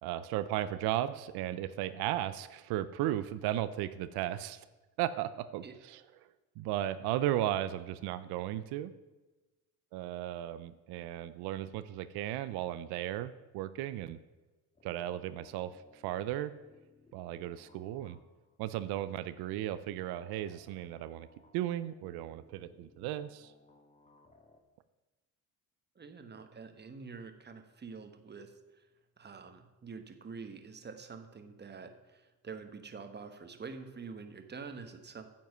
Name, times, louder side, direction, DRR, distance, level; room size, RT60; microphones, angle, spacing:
voice 1, 0.0-4.6 5.0-6.0 6.6-8.9 9.9-14.2 14.8-16.5 17.1-18.2 18.6-21.3 21.5-23.5, right 13 dB, 90° right, 13 dB, 0.5 m, -35 dB
sound 1, 14.8-18.6 20.2-24.6, left 2 dB, 20° left, 1.6 m, -63 dB
voice 2, 26.0-28.9 29.2-35.3, right 5 dB, 30° right, 7 dB, 1.1 m, -47 dB
9.3 x 7.4 x 5.5 m, 1.2 s
cardioid pair, 90°, 37 cm